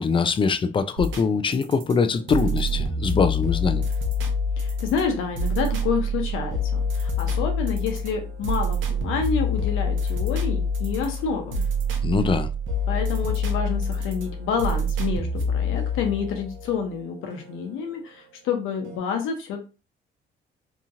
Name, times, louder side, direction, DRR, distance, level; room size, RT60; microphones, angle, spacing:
voice 1, 0.0-3.8 12.0-12.5, left 5 dB, 25° left, 0.3 m, -23 dB
sound 1, 1.0-18.0 18.8-19.0, left 2 dB, 75° right, 0.7 m, -27 dB
voice 2, 4.6-11.7 12.9-15.3 15.5-19.6, left 6 dB, 90° left, 0.8 m, -28 dB
2.9 x 2.4 x 2.7 m
cardioid pair, 90°, 20 cm